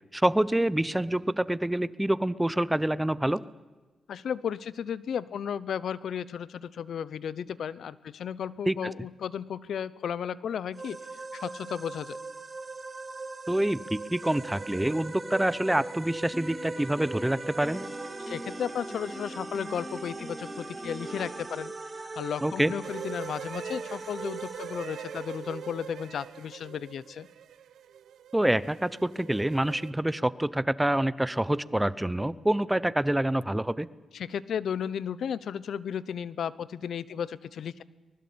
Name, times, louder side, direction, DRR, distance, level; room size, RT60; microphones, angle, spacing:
voice 1, 0.1-3.4 8.7-8.9 13.5-17.8 22.4-22.7 28.3-33.9, right 1 dB, 10° right, 18 dB, 0.7 m, -26 dB
voice 2, 4.1-11.0 11.3-12.2 18.2-21.7 22.0-27.3 34.1-37.8, left 8 dB, 75° left, 19 dB, 0.9 m, -34 dB
sound 1, 10.7-26.1, right 3 dB, 25° right, 1.5 m, -40 dB
Piano, 16.3-21.5, equal, 10° left, 2.6 m, -43 dB
sound 2, 22.8-29.9, right 9 dB, 90° right, 0.9 m, -43 dB
24.0 x 20.5 x 8.6 m, 1.3 s
cardioid pair, 115°, 0 cm